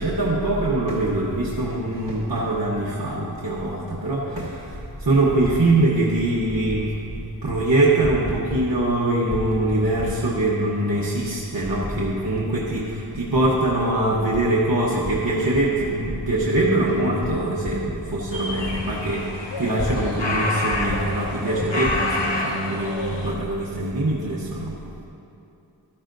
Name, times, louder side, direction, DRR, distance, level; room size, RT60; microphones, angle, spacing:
voice 1, 0.0-6.9 7.4-24.8, right 2 dB, 55° right, -5 dB, 1.1 m, -23 dB
Typing, 3.6-3.7 4.5-5.6 6.2-6.8 7.1-7.6 7.9-8.9 9.2-10.4 11.0-11.1 11.6-12.5 12.8-15.1 15.5-20.1 20.3-20.4 20.7-22.0, equal, 20° left, 1.3 m, -34 dB
sound 1, 18.3-23.3, left 2 dB, 90° left, 1.0 m, -28 dB
12.5 x 10.0 x 2.6 m, 2.8 s
wide cardioid pair, 55°, 42 cm